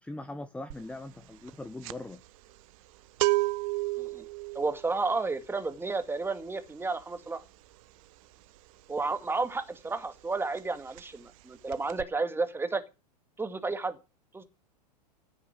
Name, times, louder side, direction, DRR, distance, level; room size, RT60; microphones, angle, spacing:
voice 1, 0.0-2.2, left 2 dB, 5° left, 1.1 m, -41 dB
sound 1, 0.7-1.0 1.2-9.8 10.1-10.3 10.6-11.4 11.7-12.0, right 22 dB, 55° right, 1.0 m, -33 dB
voice 2, 4.5-7.4 8.9-12.8 13.4-14.0 14.3-14.4, right 3 dB, 10° right, 2.2 m, -32 dB
15.5 x 7.1 x 8.5 m
hypercardioid pair, 95°, 21 cm